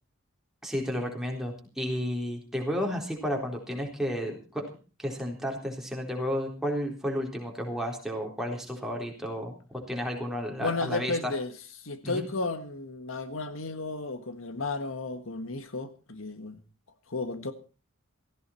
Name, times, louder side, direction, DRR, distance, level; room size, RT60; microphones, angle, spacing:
voice 1, 0.6-4.7 5.0-11.3 12.0-12.2, equal, ahead, 3.8 m, -32 dB
voice 2, 10.6-11.5 11.8-16.6 17.1-17.5, left 3 dB, 75° left, 1.6 m, -33 dB
17.5 x 15.0 x 4.4 m
head